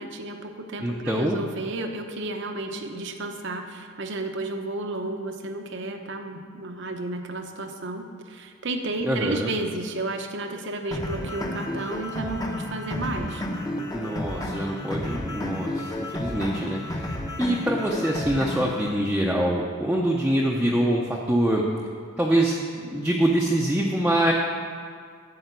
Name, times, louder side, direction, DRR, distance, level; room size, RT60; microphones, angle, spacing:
voice 1, 0.0-13.4, right 2 dB, 55° right, 5 dB, 0.9 m, -32 dB
voice 2, 0.8-1.4 9.0-9.5 13.9-21.6 22.2-24.3, right 1 dB, 5° right, -3 dB, 0.7 m, -25 dB
sound 1, 10.9-18.9, left 1 dB, 20° left, 0.9 m, -32 dB
12.0 x 5.0 x 8.2 m, 2.1 s
head